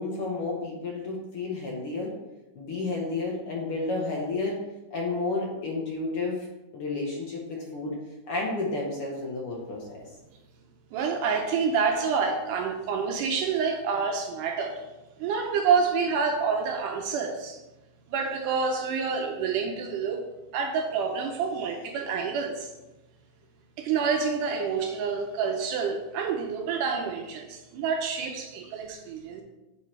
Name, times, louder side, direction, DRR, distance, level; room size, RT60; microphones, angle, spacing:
voice 1, 0.0-2.1 2.5-4.6 4.9-6.5 6.7-7.9 8.3-10.0, left 3 dB, 65° left, -2 dB, 1.4 m, -31 dB
voice 2, 10.9-14.9 15.2-17.6 18.1-20.2 20.5-22.7 23.8-29.4, right 5 dB, 80° right, 3 dB, 2.0 m, -28 dB
7.8 x 4.8 x 4.4 m, 1.0 s
omnidirectional pair, 4.0 m